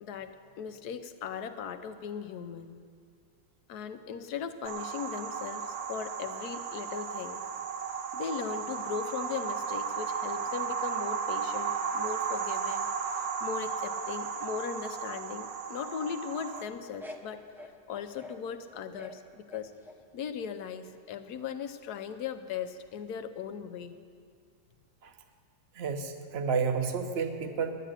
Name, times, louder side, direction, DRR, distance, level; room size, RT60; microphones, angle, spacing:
voice 1, 0.0-2.8 3.7-7.4 8.1-17.4 17.9-19.7 20.1-24.0, left 7 dB, 75° left, 9 dB, 1.3 m, -38 dB
sound 1, 4.6-16.6, right 6 dB, 70° right, 1.3 m, -34 dB
sound 2, 16.4-18.4 18.7-20.0 20.5-21.0 23.0-23.1, left 1 dB, ahead, 0.4 m, -47 dB
voice 2, 25.7-27.7, right 5 dB, 45° right, 6 dB, 1.0 m, -30 dB
11.0 x 10.0 x 8.8 m, 2.2 s
omnidirectional pair, 1.7 m